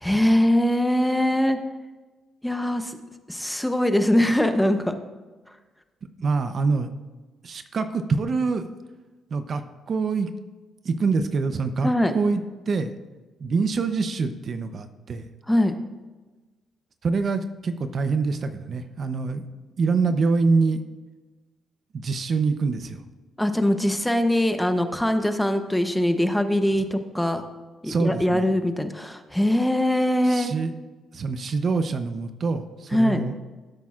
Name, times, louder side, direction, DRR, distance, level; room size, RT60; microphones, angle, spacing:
voice 1, 0.0-1.6 2.4-3.0 3.3-5.0 11.8-12.1 15.5-15.8 23.4-27.4 27.8-30.5 32.9-33.2, left 1 dB, 5° left, 8 dB, 0.9 m, -22 dB
voice 2, 6.2-6.9 7.4-8.6 9.3-10.3 10.8-12.9 13.4-15.3 17.0-19.4 19.8-20.8 21.9-23.0 27.8-28.4 30.2-30.7 31.1-33.3, right 4 dB, 50° right, 9 dB, 0.7 m, -25 dB
17.0 x 8.3 x 2.5 m, 1.2 s
cardioid pair, 90°, 0 cm